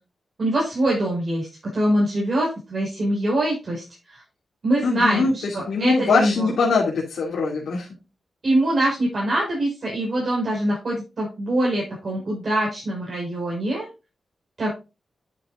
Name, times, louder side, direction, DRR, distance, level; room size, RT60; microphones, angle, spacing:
voice 1, 0.4-1.5 1.7-3.8 4.1-4.2 4.6-6.5 8.4-13.9 14.6-14.7, right 1 dB, 45° right, -4 dB, 5.6 m, -23 dB
voice 2, 4.8-7.9, left 4 dB, 85° left, -3 dB, 2.7 m, -22 dB
10.5 x 7.5 x 2.5 m, 0.27 s
wide cardioid pair, 150°, 0 cm